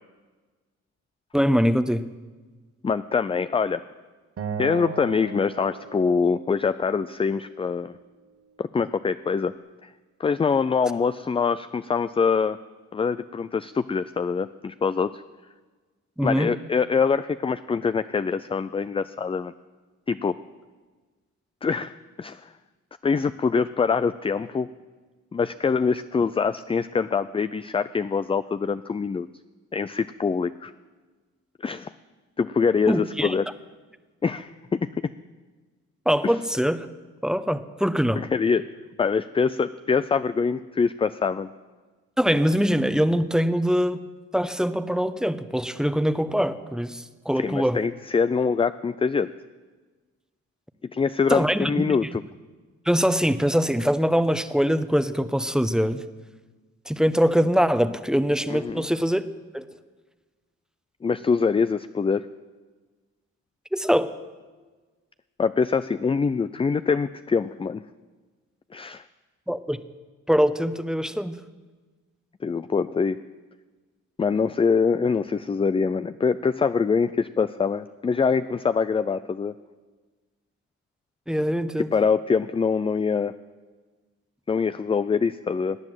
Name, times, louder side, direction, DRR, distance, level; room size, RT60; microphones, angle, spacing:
voice 1, 1.3-2.0 16.2-16.5 32.9-33.3 36.1-36.9 37.2-38.2 42.2-44.0 44.3-47.8 51.3-51.7 52.9-56.0 56.9-59.2 59.5-59.7 63.7-64.1 69.5-69.8 70.3-71.4 81.3-81.9, equal, ahead, 12 dB, 0.9 m, -23 dB
voice 2, 2.8-3.8 4.6-8.0 8.6-9.5 9.8-9.9 10.2-12.6 12.9-15.2 16.2-19.5 20.1-20.3 21.6-22.5 23.0-24.7 25.3-29.3 29.7-30.7 31.6-31.9 32.4-33.5 34.2-35.1 36.2-36.3 38.2-38.7 39.0-41.5 47.4-49.3 50.9-52.2 58.5-58.8 61.0-62.3 65.4-67.8 68.7-69.0 72.4-73.2 74.2-79.5 81.9-83.3 84.5-85.8, left 5 dB, 20° left, 13 dB, 0.4 m, -24 dB
Acoustic guitar, 4.4-7.6, right 6 dB, 50° right, 1.2 m, -37 dB
18.0 x 9.7 x 7.8 m, 1.3 s
cardioid pair, 80°, 29 cm